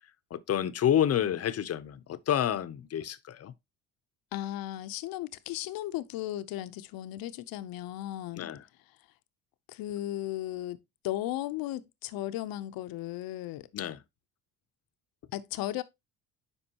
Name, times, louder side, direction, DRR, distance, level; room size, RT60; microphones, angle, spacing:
voice 1, 0.3-3.5 8.4-8.6 13.7-14.0, left 10 dB, 45° left, 0.8 m, -29 dB
voice 2, 4.3-8.5 9.7-10.8 11.0-13.7 15.3-15.8, left 14 dB, 80° left, 0.8 m, -35 dB
9.8 x 5.2 x 2.9 m
cardioid pair, 110°, 34 cm